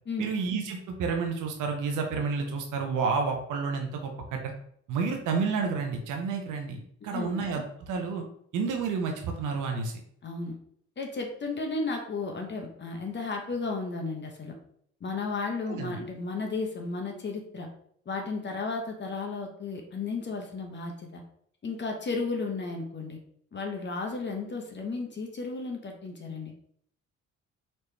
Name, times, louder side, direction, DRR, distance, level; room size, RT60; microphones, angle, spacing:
voice 1, 0.2-4.5 4.9-8.3 8.5-10.0 15.7-16.0, right 5 dB, 85° right, 3 dB, 0.8 m, -30 dB
voice 2, 7.0-7.4 10.2-10.6 11.0-14.6 15.0-17.7 18.1-21.2 21.6-23.2 23.5-26.5, left 3 dB, 35° left, 2 dB, 0.9 m, -34 dB
4.3 x 3.1 x 3.3 m, 0.66 s
cardioid pair, 90°, 30 cm